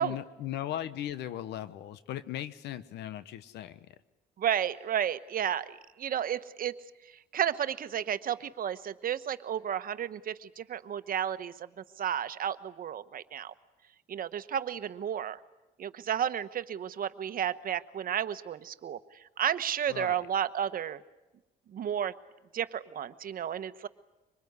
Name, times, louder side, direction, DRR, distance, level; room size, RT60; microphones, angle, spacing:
voice 1, 0.0-3.8 19.9-20.2, left 12 dB, 85° left, 14 dB, 1.0 m, -38 dB
voice 2, 4.4-6.8 7.3-11.7 12.0-13.5 14.1-15.4 15.8-19.0 19.4-21.0 21.7-22.1 22.5-23.9, right 9 dB, 55° right, 13 dB, 1.1 m, -32 dB
24.5 x 20.5 x 9.6 m, 1.1 s
cardioid pair, 90°, 17 cm